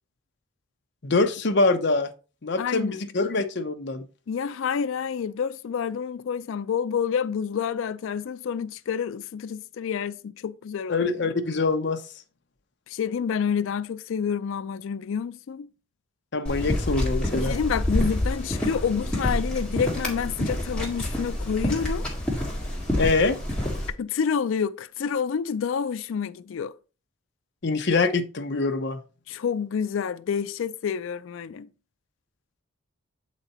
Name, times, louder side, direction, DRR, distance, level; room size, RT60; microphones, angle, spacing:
voice 1, 1.0-2.1 2.4-4.1 10.9-12.0 16.3-17.6 23.0-23.4 27.6-29.0, left 3 dB, 55° left, 0.7 m, -24 dB
voice 2, 2.6-3.0 4.3-11.0 12.9-15.7 17.4-22.0 24.0-26.7 29.3-31.7, left 7 dB, 70° left, 0.4 m, -28 dB
sound 1, 16.4-23.9, left 1 dB, 5° left, 1.7 m, -28 dB
8.0 x 4.1 x 4.2 m
head